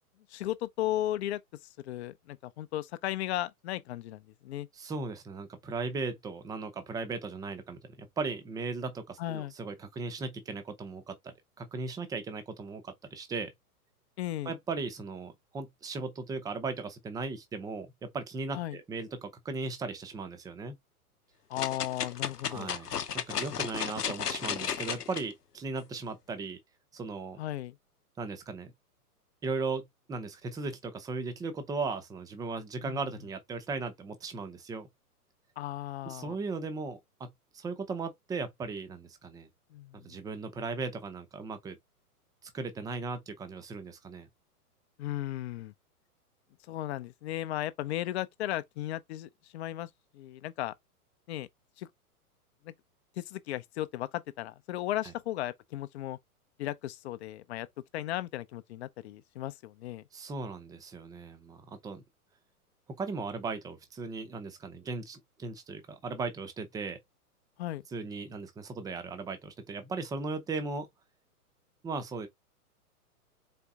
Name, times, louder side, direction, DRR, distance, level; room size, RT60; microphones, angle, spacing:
voice 1, 0.3-1.4 1.8-4.7 9.2-9.5 14.2-14.5 18.5-18.8 21.5-22.7 27.4-27.8 32.8-33.0 35.6-36.4 39.7-40.2 45.0-45.7 46.7-50.7 51.3-51.5 51.8-51.9 52.6-52.7 53.2-56.2 56.6-57.7 57.9-60.0 67.6-67.8, left 14 dB, 45° left, 0.6 m, -35 dB
voice 2, 4.8-13.5 14.5-20.8 22.5-22.9 23.1-26.6 26.9-27.4 28.2-28.7 29.4-34.9 36.1-37.3 37.5-39.5 39.9-41.8 42.4-44.3 60.1-62.0 63.0-67.0 67.9-70.9 71.8-72.3, right 4 dB, 10° right, 0.6 m, -37 dB
sound 1, 21.6-25.2 25.8-25.9, left 8 dB, 90° left, 0.8 m, -34 dB
4.3 x 3.3 x 3.5 m
hypercardioid pair, 110°, 45 cm